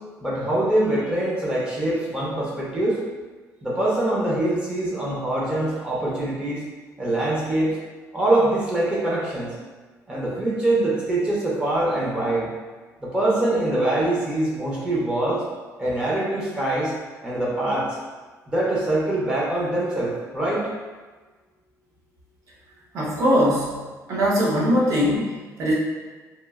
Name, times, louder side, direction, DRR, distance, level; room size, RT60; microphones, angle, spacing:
voice 1, 0.2-3.0 3.6-6.6 7.0-7.8 8.1-9.5 10.1-12.5 13.0-15.4 15.8-16.9 17.2-18.0 18.5-20.7, right 1 dB, 15° right, -6 dB, 0.5 m, -24 dB
voice 2, 22.9-23.8 24.1-25.7, equal, 55° right, -5 dB, 0.7 m, -21 dB
2.9 x 2.3 x 2.3 m, 1.3 s
cardioid pair, 165°, 6 cm